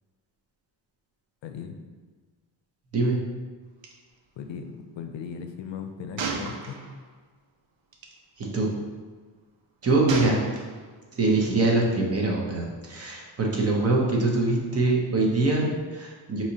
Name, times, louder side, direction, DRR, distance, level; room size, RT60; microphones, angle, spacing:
voice 1, 1.4-1.8 4.4-6.8, left 6 dB, 85° left, 6 dB, 0.5 m, -37 dB
Gunshot gunfire, 3.8-3.9 4.2-4.4 6.2-7.1 7.9-8.1 10.1-11.0, right 5 dB, 80° right, 0.7 m, -33 dB
voice 2, 8.4-8.7 9.8-10.4 11.1-16.4, right 2 dB, 35° right, -1 dB, 0.7 m, -23 dB
4.8 x 2.9 x 2.8 m, 1.4 s
wide cardioid pair, 135°, 44 cm